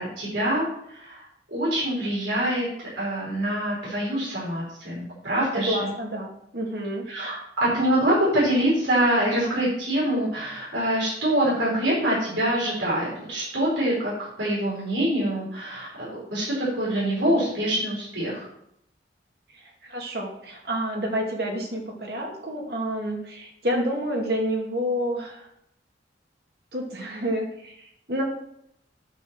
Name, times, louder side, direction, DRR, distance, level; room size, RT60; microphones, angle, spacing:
voice 1, 0.0-5.9 7.1-15.9 16.3-18.5, right 1 dB, 85° right, -7 dB, 4.8 m, -25 dB
voice 2, 5.5-7.1 19.5-25.5 26.7-28.2, equal, 55° right, 0 dB, 2.4 m, -29 dB
8.8 x 7.0 x 6.3 m, 0.75 s
head